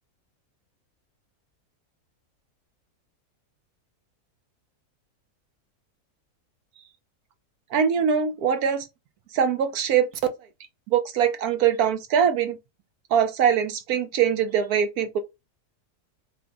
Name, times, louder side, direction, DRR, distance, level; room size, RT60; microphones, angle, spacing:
voice 1, 7.7-8.9 9.3-10.1 10.9-12.6 13.1-15.2, right 8 dB, 70° right, 1.2 m, -22 dB
3.7 x 2.1 x 3.8 m
omnidirectional pair, 1.7 m